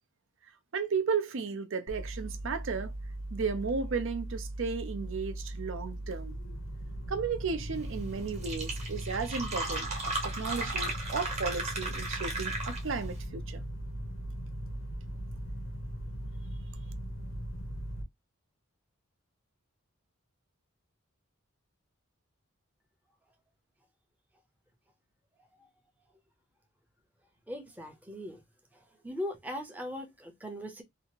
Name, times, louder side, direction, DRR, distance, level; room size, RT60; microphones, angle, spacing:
voice 1, 0.7-2.9 3.3-6.3 7.1-9.9 10.2-13.6, right 5 dB, 60° right, 0.5 m, -34 dB
sound 1, 1.9-18.0, right 1 dB, 65° left, 0.7 m, -39 dB
Fill (with liquid), 8.0-8.1 8.3-13.1, right 2 dB, 30° right, 1.0 m, -35 dB
voice 2, 27.5-28.4 28.7-30.8, left 1 dB, 5° right, 0.6 m, -40 dB
2.8 x 2.4 x 2.8 m
head